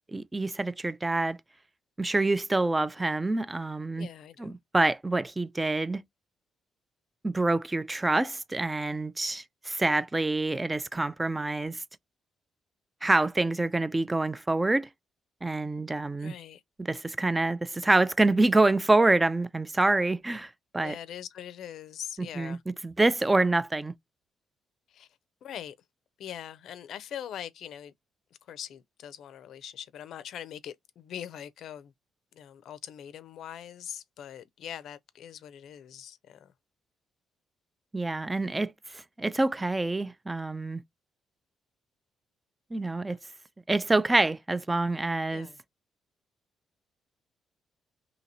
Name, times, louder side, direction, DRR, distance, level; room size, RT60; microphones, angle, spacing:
voice 1, 0.1-1.4 2.0-4.1 4.4-6.0 7.2-11.8 13.0-14.9 15.4-16.3 16.9-20.9 22.4-22.6 22.8-23.9 37.9-40.8 42.7-43.2 43.7-45.5, right 2 dB, 15° right, 0.4 m, -26 dB
voice 2, 3.9-4.5 16.2-16.6 20.8-22.6 24.9-25.1 25.4-25.8 26.2-27.9 28.5-31.9 32.3-36.5 43.1-43.2 45.3-45.6, left 10 dB, 75° left, 0.5 m, -42 dB
2.9 x 2.8 x 4.0 m
cardioid pair, 90°, 0 cm